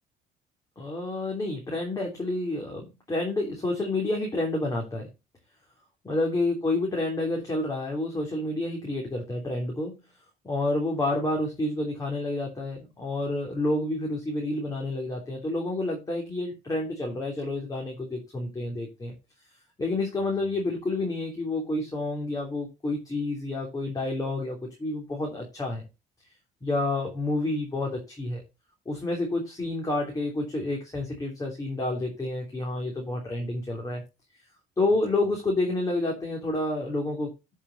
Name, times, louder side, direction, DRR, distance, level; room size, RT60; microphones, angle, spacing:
voice 1, 0.8-5.1 6.0-9.9 10.4-19.1 19.8-25.8 26.6-28.4 28.8-34.0 34.8-37.3, left 2 dB, 20° left, 0 dB, 3.2 m, -29 dB
12.0 x 5.6 x 4.1 m, 0.26 s
cardioid pair, 110°, 17 cm